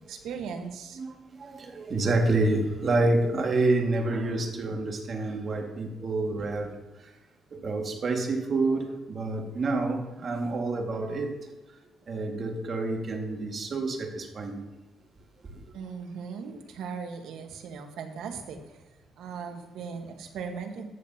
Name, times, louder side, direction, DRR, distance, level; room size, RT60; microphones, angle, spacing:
voice 1, 0.1-1.0 15.7-18.7 19.2-20.9, right 6 dB, 80° right, 1.3 m, -38 dB
voice 2, 1.0-7.1 7.5-11.4 12.1-14.6 15.6-15.7, right 2 dB, 45° right, 1.9 m, -28 dB
13.5 x 9.5 x 2.8 m
cardioid pair, 90°, 0 cm